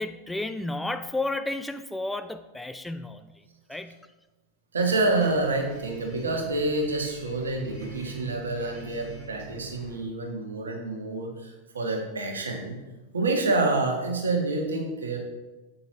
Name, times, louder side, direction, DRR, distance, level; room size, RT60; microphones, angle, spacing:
voice 1, 0.0-3.2 3.7-4.0, left 2 dB, 5° left, 9 dB, 0.4 m, -32 dB
voice 2, 4.7-12.8 13.1-15.2, right 2 dB, 70° right, 2 dB, 1.5 m, -27 dB
Bus, 4.8-10.0, right 5 dB, 40° right, 2.7 m, -44 dB
8.5 x 7.9 x 3.0 m, 1.1 s
figure-of-eight pair, 90°, 0 cm